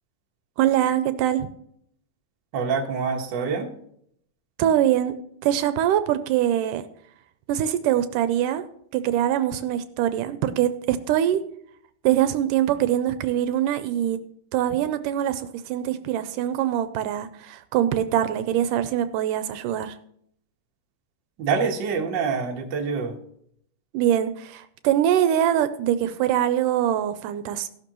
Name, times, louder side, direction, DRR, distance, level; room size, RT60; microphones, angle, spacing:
voice 1, 0.6-1.5 4.6-5.1 5.4-6.8 7.5-8.7 8.9-11.4 12.0-14.2 14.5-20.0 23.9-27.7, right 11 dB, 80° right, 11 dB, 2.1 m, -23 dB
voice 2, 2.5-3.7 21.4-23.1, right 5 dB, 45° right, 1 dB, 1.5 m, -26 dB
15.5 x 12.0 x 3.0 m, 0.70 s
omnidirectional pair, 3.8 m